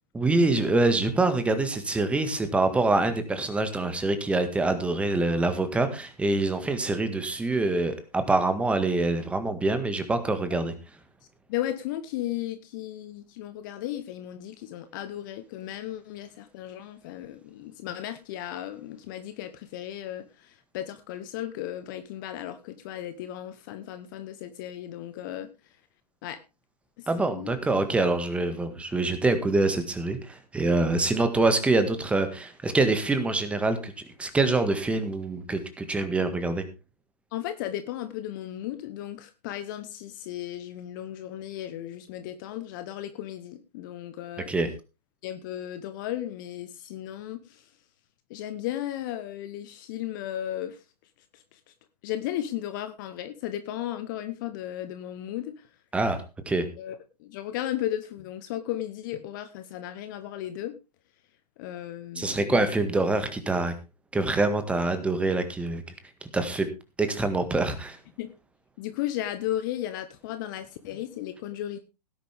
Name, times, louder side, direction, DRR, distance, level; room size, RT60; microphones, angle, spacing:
voice 1, 0.1-10.7 27.1-33.9 34.2-36.7 44.5-44.7 55.9-56.2 56.5-56.7 62.2-63.7 64.1-65.8 66.3-66.7 67.0-68.0, right 2 dB, 5° right, 1.8 m, -25 dB
voice 2, 11.5-25.8 26.2-26.4 27.0-27.5 37.3-44.5 45.2-47.7 48.3-50.8 51.3-51.7 52.0-55.7 56.8-60.7 61.6-62.7 68.2-68.3 68.8-71.8, left 12 dB, 30° left, 1.0 m, -35 dB
17.5 x 10.0 x 3.5 m
figure-of-eight pair, 125°, 21 cm